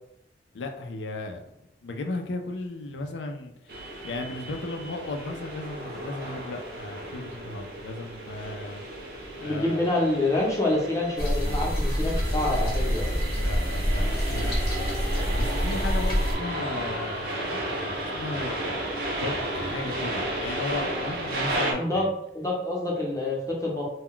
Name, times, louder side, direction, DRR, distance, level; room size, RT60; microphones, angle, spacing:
voice 1, 0.5-1.5 1.8-3.8 4.0-8.8 9.4-9.8 13.4-17.6 18.1-18.6 19.1-22.1, left 2 dB, 90° left, 4 dB, 0.4 m, -35 dB
sound 1, 3.7-21.7, right 1 dB, 55° right, 0.6 m, -33 dB
voice 2, 9.4-13.1 21.8-22.0 22.3-24.0, left 2 dB, 20° left, -4 dB, 0.6 m, -27 dB
sound 2, 11.2-16.4, equal, 55° left, 0.7 m, -26 dB
2.2 x 2.2 x 3.6 m, 0.80 s
head